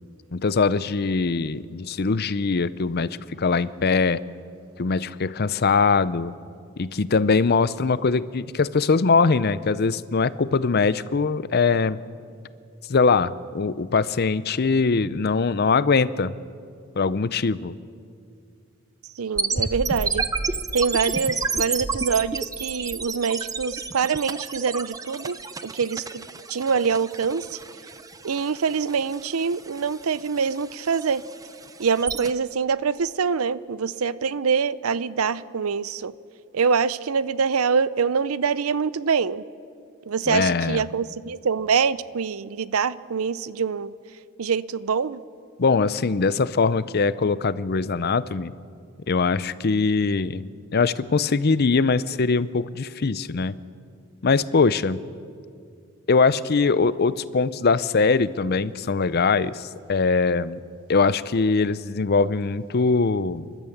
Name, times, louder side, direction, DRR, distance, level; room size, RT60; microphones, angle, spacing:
voice 1, 0.3-3.1 3.4-4.2 4.8-6.3 6.8-12.0 12.9-16.3 17.0-17.8 40.3-40.8 45.6-48.5 49.1-53.6 54.2-55.0 56.1-60.6 60.9-63.4, left 4 dB, 50° left, 16 dB, 0.6 m, -22 dB
voice 2, 19.2-20.2 20.7-25.4 25.6-27.6 28.2-31.2 31.8-36.1 36.5-39.4 40.1-43.9 44.4-45.2, right 6 dB, 90° right, 17 dB, 0.6 m, -25 dB
sound 1, 19.4-32.3, right 4 dB, 15° right, 0.6 m, -31 dB
29.5 x 12.5 x 7.2 m, 2.3 s
head